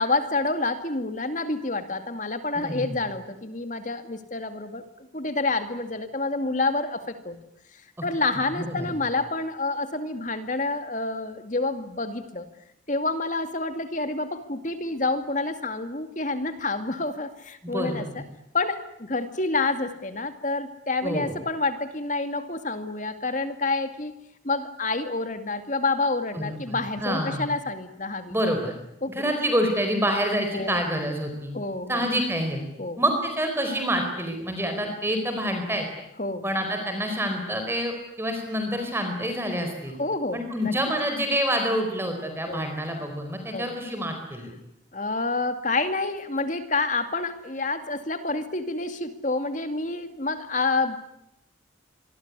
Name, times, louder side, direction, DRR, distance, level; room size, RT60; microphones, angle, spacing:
voice 1, 0.0-4.8 5.1-7.4 8.0-12.5 12.9-18.2 18.5-24.1 24.4-28.4 29.0-29.3 30.5-30.8 31.5-32.1 32.8-33.0 36.2-36.4 40.0-40.7 42.5-42.6 43.5-43.7 44.9-51.0, left 3 dB, 40° left, 9 dB, 2.3 m, -28 dB
voice 2, 2.6-3.0 8.5-8.9 17.6-18.0 21.0-21.4 26.3-27.5 28.3-28.7 29.1-31.5 31.9-32.6 33.0-35.8 36.4-40.0 40.3-44.5, equal, 10° right, 5 dB, 4.8 m, -27 dB
26.0 x 23.0 x 9.8 m, 0.80 s
head